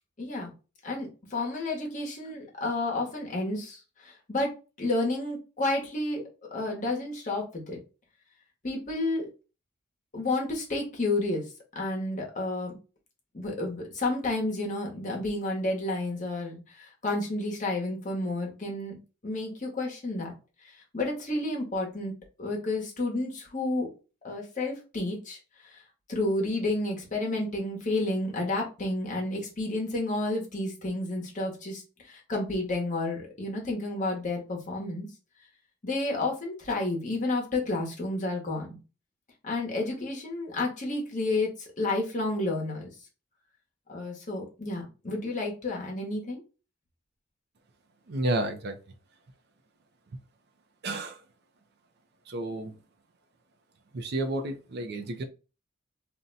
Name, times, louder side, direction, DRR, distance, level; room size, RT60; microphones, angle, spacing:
voice 1, 0.2-0.5 0.8-4.5 4.8-6.2 6.5-7.8 8.6-9.3 10.1-11.4 11.7-12.8 13.3-19.0 19.2-20.3 20.6-22.1 22.4-23.9 24.2-25.8 26.1-35.1 35.8-38.8 39.4-42.9 43.9-46.4, left 2 dB, 40° left, -1 dB, 1.0 m, -31 dB
voice 2, 48.1-48.8 50.8-51.2 52.3-52.8 53.9-55.2, right 2 dB, 50° right, 5 dB, 0.5 m, -31 dB
2.6 x 2.2 x 3.8 m, 0.32 s
head